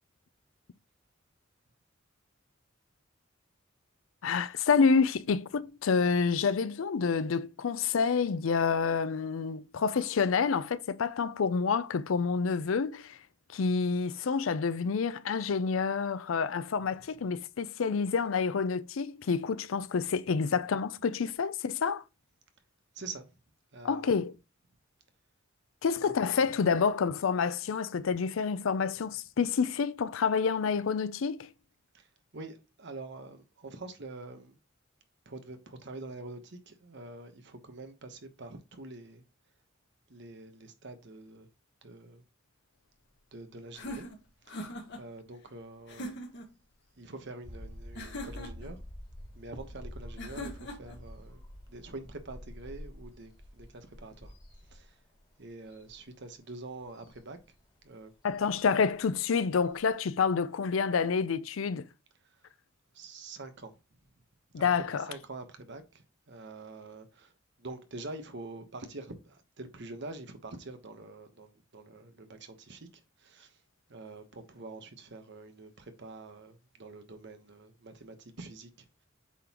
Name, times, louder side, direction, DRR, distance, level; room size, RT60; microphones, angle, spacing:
voice 1, 4.2-13.2 13.5-22.0 23.8-24.3 25.8-31.5 58.2-61.9 64.5-65.0, left 5 dB, 80° left, 0.5 m, -28 dB
voice 2, 22.9-23.4 23.7-24.2 26.0-26.4 31.9-34.6 35.2-39.2 40.1-41.5 41.8-42.2 43.3-44.1 44.4-46.2 47.0-48.8 49.3-54.4 54.6-55.0 55.4-57.4 57.8-58.1 62.2-62.5 62.9-63.7 64.6-64.7 65.0-73.6 73.9-79.1, right 2 dB, 60° right, 1.1 m, -46 dB
sound 1, 43.7-45.0 45.9-46.5 48.0-48.7 50.2-51.0, left 1 dB, 60° left, 1.5 m, -41 dB
sound 2, 47.4-59.9, equal, 20° left, 2.4 m, -48 dB
8.3 x 3.8 x 2.9 m
head